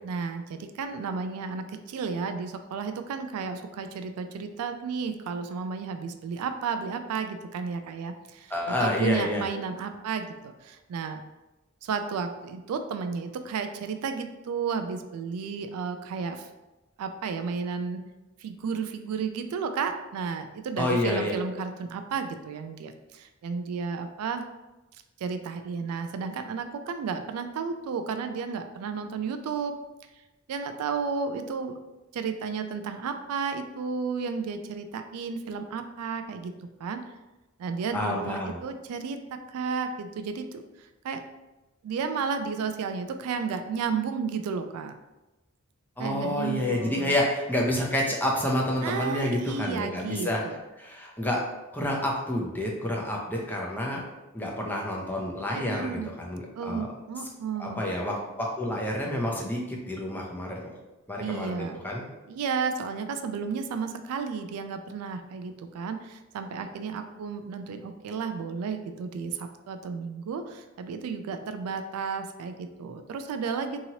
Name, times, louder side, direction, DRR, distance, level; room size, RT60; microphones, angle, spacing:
voice 1, 0.0-11.2 11.8-16.5 17.0-18.0 18.4-24.5 25.2-29.8 30.5-31.8 32.1-36.5 36.8-37.0 37.6-41.2 41.8-44.9 46.0-47.1 48.8-50.6 55.5-56.1 56.5-57.8 61.2-61.8 62.3-73.8, right 5 dB, 90° right, 9 dB, 0.3 m, -33 dB
voice 2, 8.5-9.5 20.8-21.3 37.9-38.6 46.0-50.4 50.8-51.4 51.7-54.0 54.3-56.9 57.6-60.7 61.1-62.1, left 1 dB, 10° left, -2 dB, 0.5 m, -29 dB
2.9 x 2.8 x 2.7 m, 1.0 s
head